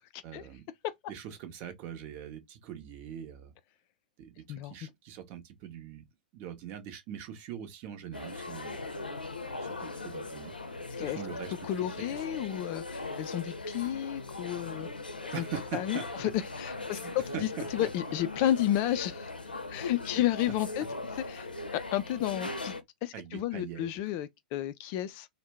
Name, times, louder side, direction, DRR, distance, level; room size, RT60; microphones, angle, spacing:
voice 1, 0.2-0.7 1.1-3.5 4.2-6.1 6.3-8.8 9.6-10.6 11.0-12.2 15.3-16.3 16.9-17.9 20.1-20.2 23.1-23.9, right 9 dB, 40° right, 0.8 m, -42 dB
sound 1, 8.1-22.8, left 3 dB, 85° left, 0.6 m, -39 dB
voice 2, 11.6-14.9 15.3-15.4 15.7-16.3 16.6-19.3 19.7-20.8 21.3-22.7 23.0-25.3, left 12 dB, 40° left, 0.3 m, -32 dB
2.6 x 2.1 x 3.3 m
figure-of-eight pair, 100°, 5 cm